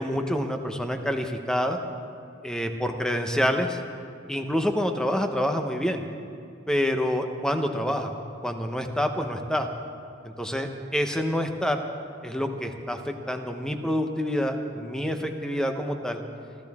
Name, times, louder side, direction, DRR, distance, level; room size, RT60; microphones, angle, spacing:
voice 1, 0.0-1.8 2.4-3.8 4.3-6.0 6.7-8.1 8.4-9.7 10.2-11.8 12.2-16.2, equal, 5° left, 5 dB, 1.0 m, -27 dB
26.0 x 14.0 x 3.6 m, 2.4 s
head